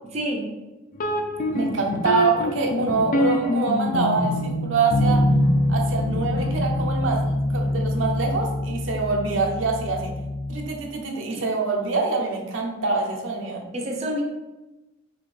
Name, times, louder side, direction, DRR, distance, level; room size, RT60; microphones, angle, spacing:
voice 1, 0.0-0.5 11.3-11.4 13.7-14.2, equal, 35° right, 0 dB, 0.5 m, -28 dB
sound 1, 0.9-10.7, left 1 dB, 45° left, 0.4 m, -24 dB
voice 2, 1.5-5.2 5.7-10.1 10.5-13.7, right 3 dB, 80° right, 1 dB, 0.7 m, -25 dB
4.2 x 2.8 x 3.1 m, 1.0 s
head